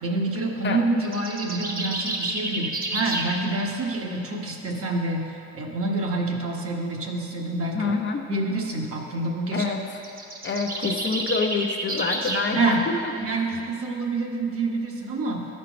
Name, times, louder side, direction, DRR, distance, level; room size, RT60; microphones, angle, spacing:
voice 1, 0.0-7.9 8.3-9.7 12.5-12.8 13.2-15.6, right 2 dB, 50° right, 0 dB, 1.2 m, -27 dB
sound 1, 1.0-3.3 9.9-12.5, right 2 dB, 30° right, 1.0 m, -30 dB
voice 2, 7.7-8.3 9.5-10.0 10.4-13.5, left 4 dB, 40° left, 4 dB, 0.6 m, -27 dB
11.0 x 4.5 x 5.1 m, 2.8 s
cardioid pair, 90°, 30 cm